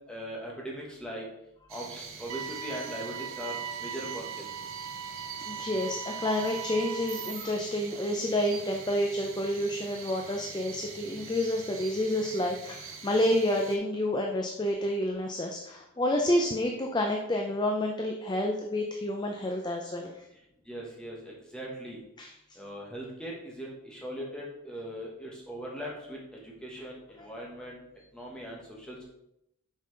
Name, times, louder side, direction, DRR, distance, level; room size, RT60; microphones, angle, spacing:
voice 1, 0.1-1.2 1.7-4.4 20.7-22.0 22.6-26.2 26.4-27.8 28.1-29.0, equal, 5° left, -3 dB, 1.1 m, -40 dB
sound 1, 1.7-13.8, right 6 dB, 60° right, 0.8 m, -44 dB
sound 2, 2.3-7.3, right 8 dB, 90° right, 0.3 m, -39 dB
voice 2, 5.5-20.3 22.2-22.3 27.2-27.3, left 1 dB, 20° left, 2 dB, 0.4 m, -29 dB
5.4 x 5.4 x 3.8 m, 0.83 s
head